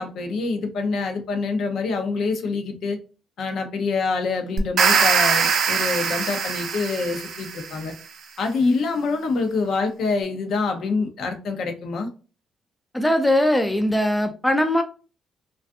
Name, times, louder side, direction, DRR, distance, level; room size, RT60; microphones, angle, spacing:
voice 1, 0.0-3.0 3.4-7.9 8.4-12.1, left 4 dB, 70° left, 0.6 m, -26 dB
sound 1, 4.6-7.8, right 6 dB, 70° right, 0.4 m, -22 dB
voice 2, 12.9-14.8, left 1 dB, 10° left, 0.3 m, -20 dB
2.5 x 2.3 x 2.3 m
cardioid pair, 90°, 0 cm